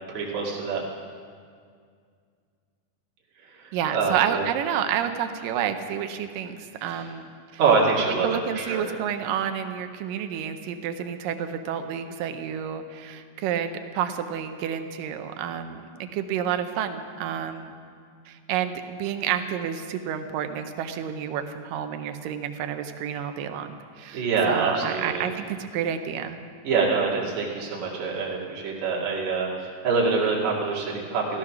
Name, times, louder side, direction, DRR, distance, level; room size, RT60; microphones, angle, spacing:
voice 1, 0.1-0.8 3.5-4.4 6.8-7.1 7.6-8.8 24.1-25.2 26.6-31.4, right 4 dB, 50° right, -4 dB, 3.2 m, -25 dB
voice 2, 3.7-7.3 8.2-17.7 18.3-26.4, right 9 dB, 75° right, 8 dB, 2.1 m, -30 dB
16.0 x 13.5 x 6.0 m, 2.2 s
omnidirectional pair, 4.6 m